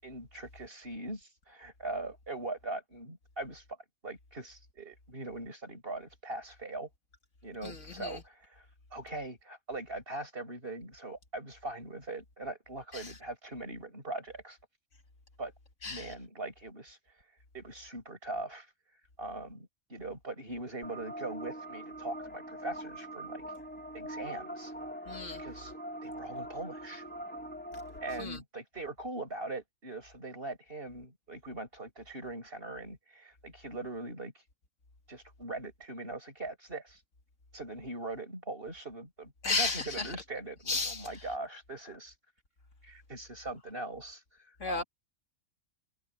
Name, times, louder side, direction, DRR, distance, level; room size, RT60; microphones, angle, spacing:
voice 1, 0.0-3.6 4.0-6.9 7.4-8.6 8.9-14.6 15.4-15.5 15.8-17.0 17.5-18.7 19.2-23.4 23.9-24.7 25.4-25.7 26.0-27.0 28.0-34.3 35.1-37.0 37.5-42.1 42.8-44.8, right 2 dB, 45° right, 7.4 m, -41 dB
voice 2, 7.6-8.2 12.9-13.1 15.8-16.1 25.1-25.4 28.2-28.4 39.4-40.1 40.7-41.1 44.6-44.8, left 3 dB, 65° left, 2.8 m, -33 dB
sound 1, 20.8-28.2, right 1 dB, 5° left, 3.2 m, -43 dB
omnidirectional pair, 1.4 m